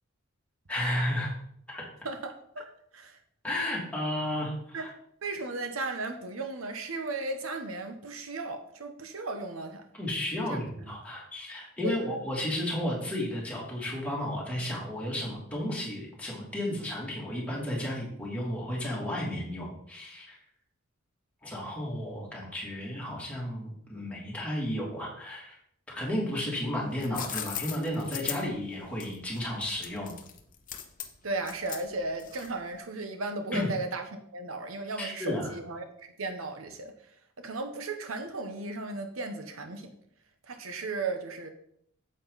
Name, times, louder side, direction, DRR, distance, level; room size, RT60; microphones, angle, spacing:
voice 1, 0.7-1.3 1.7-1.8 3.4-4.9 9.9-20.4 21.4-25.6 25.9-30.1 33.5-33.7 35.0-35.6, left 1 dB, 5° left, -5 dB, 2.8 m, -33 dB
voice 2, 2.0-2.7 2.9-3.2 4.7-4.9 5.2-9.9 10.5-10.6 11.8-12.2 31.2-36.9 37.4-39.9 40.5-41.5, right 3 dB, 85° right, 7 dB, 1.1 m, -35 dB
sound 1, 26.7-32.7, left 10 dB, 40° left, 0.9 m, -39 dB
9.0 x 7.8 x 4.1 m, 0.69 s
head